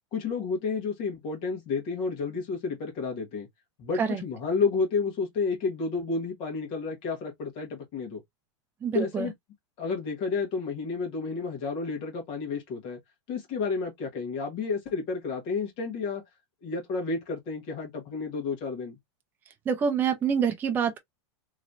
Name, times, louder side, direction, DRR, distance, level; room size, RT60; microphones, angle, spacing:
voice 1, 0.1-3.5 3.8-8.2 8.9-9.3 9.8-13.0 13.3-16.2 16.6-19.0, left 4 dB, 35° left, 1.4 m, -31 dB
voice 2, 8.8-9.3 19.7-21.0, right 7 dB, 10° right, 0.5 m, -26 dB
3.1 x 2.8 x 2.5 m
supercardioid pair, 160°, 15 cm